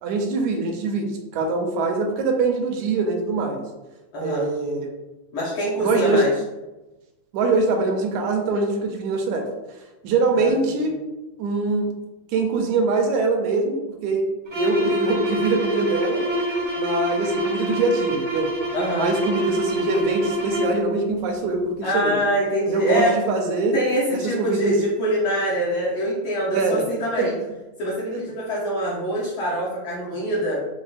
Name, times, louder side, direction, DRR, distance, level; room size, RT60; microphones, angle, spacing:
voice 1, 0.0-3.6 4.2-4.9 5.8-6.2 7.3-9.4 10.0-10.9 11.4-11.9 12.3-14.2 14.5-16.2 16.8-18.5 19.0-22.2 22.7-23.8 24.1-24.8 26.5-26.8 27.2-27.5 28.1-28.2, right 3 dB, 80° right, 2 dB, 1.8 m, -23 dB
voice 2, 4.1-4.5 5.3-6.3 10.3-10.5 18.7-19.1 21.8-23.1 23.7-27.3 27.8-30.6, equal, 80° left, -7 dB, 1.2 m, -24 dB
sound 1, 14.5-20.8, equal, 55° right, 0.7 m, -26 dB
6.2 x 2.2 x 2.4 m, 1.1 s
omnidirectional pair, 3.6 m